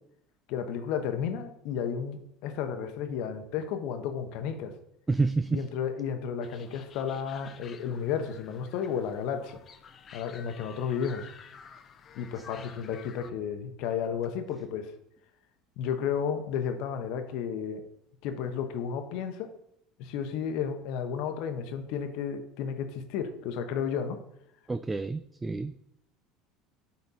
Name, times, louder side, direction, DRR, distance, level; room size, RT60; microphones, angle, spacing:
voice 1, 0.5-4.7 5.5-9.6 10.1-11.3 12.1-14.9 15.8-17.8 18.2-19.5 20.0-24.2, left 7 dB, 65° left, 7 dB, 1.0 m, -32 dB
voice 2, 5.1-5.6 24.7-25.7, right 3 dB, 15° right, 12 dB, 0.3 m, -28 dB
sound 1, 6.4-13.3, left 7 dB, 40° left, 0.8 m, -50 dB
8.3 x 4.3 x 4.2 m, 0.77 s
hypercardioid pair, 90°, 0 cm